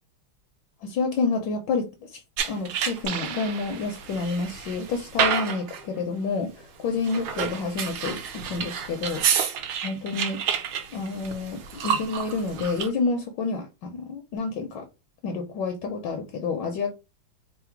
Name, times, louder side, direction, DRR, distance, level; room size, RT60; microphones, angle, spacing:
voice 1, 0.8-2.2 2.5-9.2 9.8-10.4 10.9-14.9 15.2-16.9, left 4 dB, 75° left, 1.2 m, -29 dB
sound 1, 2.4-3.3 3.8-5.9 7.0-12.9, right 7 dB, 70° right, 1.4 m, -29 dB
sound 2, 3.0-4.6, right 8 dB, 85° right, 1.5 m, -37 dB
3.8 x 2.0 x 4.4 m
omnidirectional pair, 2.3 m